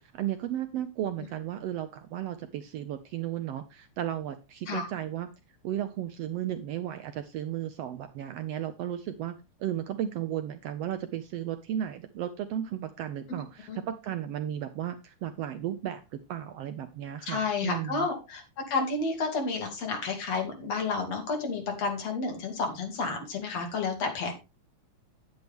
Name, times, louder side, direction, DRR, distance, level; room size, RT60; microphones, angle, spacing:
voice 1, 0.0-5.3 5.6-16.0 16.3-18.1, right 11 dB, 75° right, 9 dB, 1.6 m, -34 dB
voice 2, 17.2-24.3, left 4 dB, 60° left, 3 dB, 3.2 m, -31 dB
9.7 x 9.1 x 3.5 m, 0.29 s
omnidirectional pair, 3.3 m